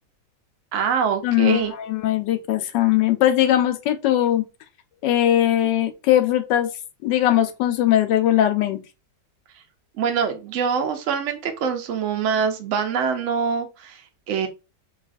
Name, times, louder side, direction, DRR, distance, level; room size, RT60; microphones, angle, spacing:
voice 1, 0.7-1.7 10.0-14.0 14.3-14.5, right 6 dB, 75° right, 0.7 m, -24 dB
voice 2, 1.2-4.4 5.0-6.7 7.0-8.8, left 12 dB, 85° left, 1.2 m, -20 dB
4.7 x 2.4 x 2.4 m
omnidirectional pair, 1.9 m